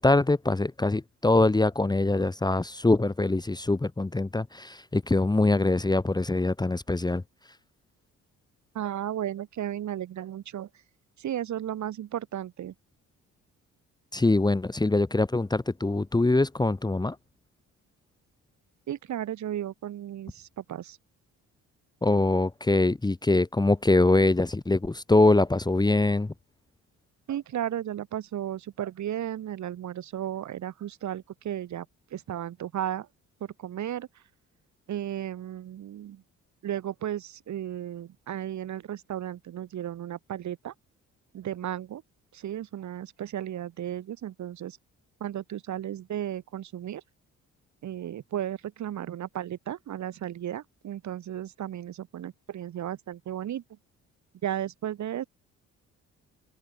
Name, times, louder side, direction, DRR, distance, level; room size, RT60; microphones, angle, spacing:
voice 1, 0.0-7.2 14.1-17.2 22.0-26.3, left 2 dB, 15° left, 1.2 m, -23 dB
voice 2, 8.7-10.7 11.2-12.7 18.9-21.0 27.3-31.9 32.1-33.1 33.4-34.1 34.9-36.2 36.6-40.7 41.3-42.0 42.3-44.8 45.2-47.0 47.8-53.6 54.4-55.3, right 11 dB, 70° right, 4.1 m, -34 dB
cardioid pair, 90°, 30 cm